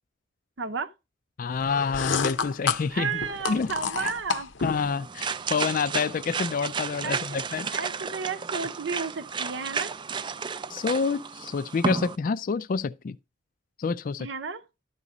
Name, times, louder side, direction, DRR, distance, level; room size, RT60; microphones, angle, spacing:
voice 1, 0.6-0.9 2.9-4.5 7.0-7.2 7.7-9.9 14.2-14.6, right 5 dB, 70° right, 0.8 m, -32 dB
voice 2, 1.4-3.2 3.5-3.7 4.0-4.1 4.6-7.7 10.7-13.2 13.8-14.3, left 5 dB, 45° left, 0.4 m, -28 dB
sound 1, 1.6-4.9, left 5 dB, 75° left, 0.7 m, -30 dB
sound 2, 4.6-12.2, right 5 dB, 25° right, 0.4 m, -32 dB
12.0 x 4.1 x 4.8 m
head